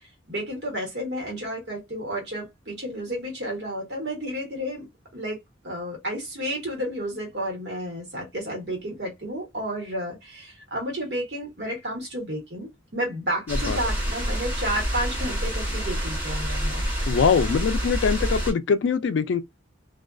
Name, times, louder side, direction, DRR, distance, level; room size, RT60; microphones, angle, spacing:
voice 1, 0.3-4.9 5.1-5.4 5.6-17.1, equal, 60° right, 1.1 m, -31 dB
voice 2, 13.5-13.8 17.1-19.4, left 6 dB, 75° left, 0.3 m, -23 dB
sound 1, 13.5-18.5, equal, 10° right, 1.1 m, -27 dB
2.4 x 2.3 x 2.2 m
head